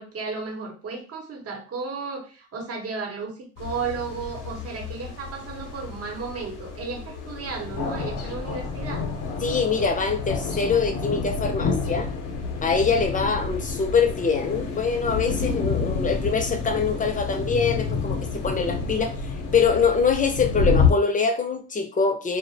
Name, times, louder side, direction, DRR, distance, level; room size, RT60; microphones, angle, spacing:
voice 1, 0.0-9.1, right 4 dB, 50° right, 0.8 m, -34 dB
sound 1, 3.6-20.9, left 4 dB, 85° left, 0.6 m, -29 dB
voice 2, 9.4-12.1 12.6-22.4, left 5 dB, 25° left, 0.5 m, -24 dB
2.4 x 2.0 x 2.6 m
cardioid pair, 90°, 30 cm